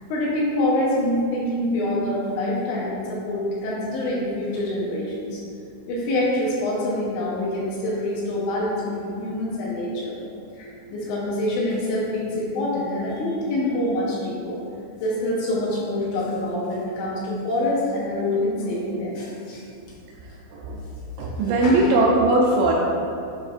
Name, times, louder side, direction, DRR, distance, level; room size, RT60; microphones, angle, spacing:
voice 1, 0.1-5.4 5.9-10.2 10.5-14.6 15.0-19.6 21.4-22.0, left 1 dB, 75° left, -5 dB, 3.0 m, -26 dB
voice 2, 21.2-22.7, right 2 dB, 85° right, -2 dB, 2.6 m, -19 dB
7.6 x 5.2 x 2.4 m, 2.5 s
omnidirectional pair, 5.5 m